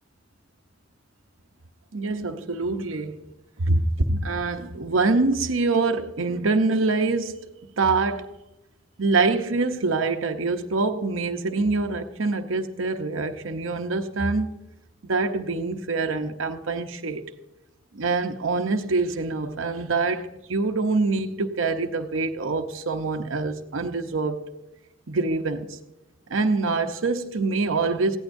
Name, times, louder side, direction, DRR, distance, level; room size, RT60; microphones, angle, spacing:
voice 1, 1.9-3.2 3.6-8.3 9.0-14.6 15.0-17.2 17.9-24.5 25.1-25.8 26.3-28.2, right 3 dB, 80° right, 0.8 m, -25 dB
19.5 x 15.5 x 2.6 m
head